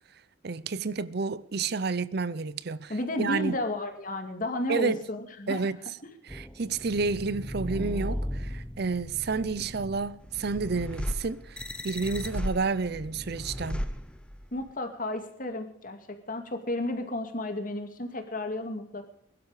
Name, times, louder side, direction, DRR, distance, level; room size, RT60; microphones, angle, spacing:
voice 1, 0.4-3.6 4.7-5.0 5.5-5.8 6.3-13.9, right 4 dB, 55° right, 0.6 m, -30 dB
voice 2, 2.9-5.6 14.5-19.1, left 1 dB, 45° left, 2.3 m, -32 dB
sound 1, 6.3-14.6, equal, 5° left, 1.0 m, -36 dB
22.0 x 12.0 x 4.9 m
head